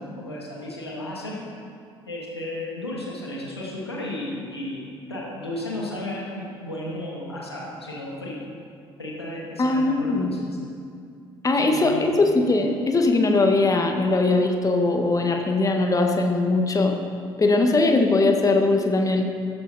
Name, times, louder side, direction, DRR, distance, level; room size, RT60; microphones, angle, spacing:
voice 1, 0.0-1.4 2.1-8.4 9.0-10.6 11.5-12.1, left 1 dB, 90° left, -3 dB, 2.3 m, -34 dB
voice 2, 9.6-10.3 11.4-17.0 17.4-19.3, left 2 dB, 25° left, 3 dB, 1.8 m, -20 dB
16.0 x 14.0 x 4.3 m, 2.4 s
figure-of-eight pair, 50°, 13 cm